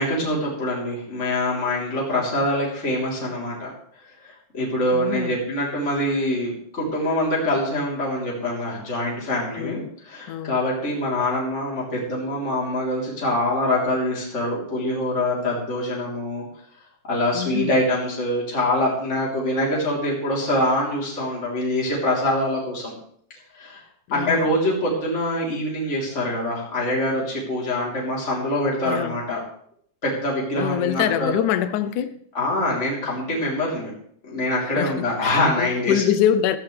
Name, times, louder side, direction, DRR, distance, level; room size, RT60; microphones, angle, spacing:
voice 1, 0.0-3.7 4.2-16.4 17.1-22.9 23.5-23.8 24.1-29.4 30.0-31.3 32.3-33.9 34.2-36.0, left 1 dB, 20° left, -4 dB, 3.7 m, -24 dB
voice 2, 4.9-5.4 9.6-9.9 10.3-10.6 17.3-17.7 24.1-24.6 28.9-29.1 30.6-32.2 34.8-36.6, left 10 dB, 80° left, 12 dB, 2.3 m, -24 dB
15.0 x 15.0 x 3.4 m, 0.62 s
omnidirectional pair, 3.5 m